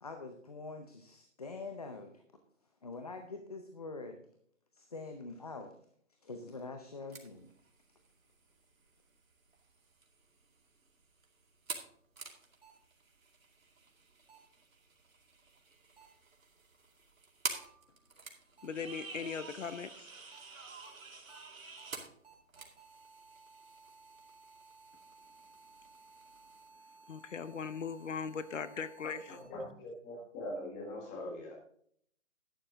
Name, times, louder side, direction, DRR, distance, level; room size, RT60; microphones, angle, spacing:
voice 1, 0.0-2.2 2.8-4.3 4.7-5.7 6.2-7.5, left 3 dB, 30° left, 6 dB, 0.7 m, -45 dB
sound 1, 7.1-26.7, right 4 dB, 90° right, 2.5 m, -49 dB
sound 2, 12.6-12.7 14.3-14.4 16.0-16.1 17.5-17.6 18.6-18.7 19.6-19.7 20.3-20.4 20.8-20.9 21.3-21.4 21.8-21.9 22.2-29.4, right 4 dB, 45° right, 3.1 m, -59 dB
voice 2, 18.6-20.1 27.1-29.4, left 6 dB, 65° left, 13 dB, 0.9 m, -39 dB
voice 3, 29.3-31.5, left 1 dB, 10° left, -1 dB, 1.4 m, -42 dB
11.5 x 8.4 x 3.8 m, 0.64 s
hypercardioid pair, 170°, 40 cm